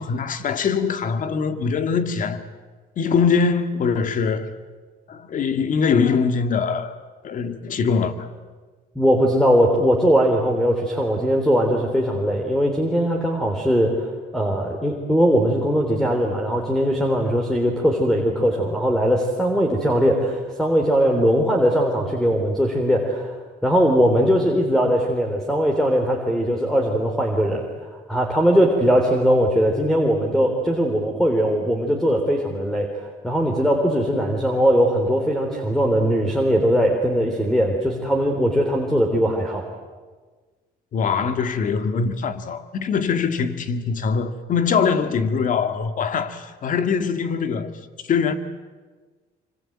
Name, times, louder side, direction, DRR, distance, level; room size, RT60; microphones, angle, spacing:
voice 1, 0.0-2.4 3.0-4.6 5.1-6.9 7.2-8.3 40.9-47.7 48.0-48.3, left 5 dB, 50° left, 2.1 m, -22 dB
voice 2, 9.0-23.4 23.6-39.7, equal, 5° left, 3.6 m, -20 dB
25.5 x 25.5 x 8.8 m
cardioid pair, 110°, 17 cm